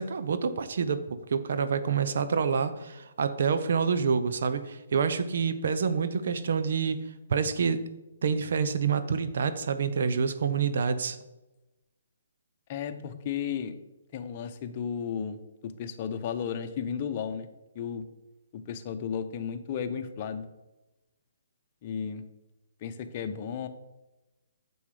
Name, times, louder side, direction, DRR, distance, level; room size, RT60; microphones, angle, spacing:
voice 1, 0.0-7.0 7.3-7.8 8.2-11.2, right 6 dB, 65° right, 11 dB, 0.9 m, -27 dB
voice 2, 12.7-13.7 14.1-17.5 17.7-18.0 18.5-20.5 21.8-22.2 22.8-23.7, left 7 dB, 40° left, 7 dB, 1.0 m, -34 dB
9.8 x 7.2 x 4.9 m, 1.0 s
hypercardioid pair, 145°, 0 cm